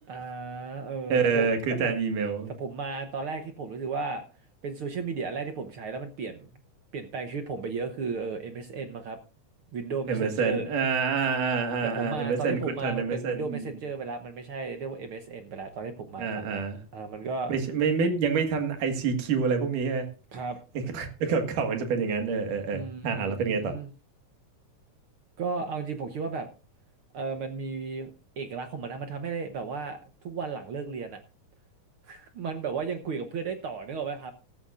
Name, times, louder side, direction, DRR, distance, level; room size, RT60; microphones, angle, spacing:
voice 1, 0.1-1.5 1.8-1.9 2.5-4.2 4.6-6.5 6.9-9.2 9.7-10.7 11.8-16.7 16.9-17.5 20.3-20.6 22.7-23.9 25.4-26.5 27.1-28.1 28.4-30.0 30.2-31.2 32.1-34.3, right 4 dB, 65° right, 1.4 m, -34 dB
voice 2, 1.1-2.5 10.1-13.7 16.2-16.8 17.5-20.1 20.9-23.7, right 5 dB, 85° right, 3.3 m, -27 dB
15.5 x 13.5 x 2.5 m
omnidirectional pair, 3.6 m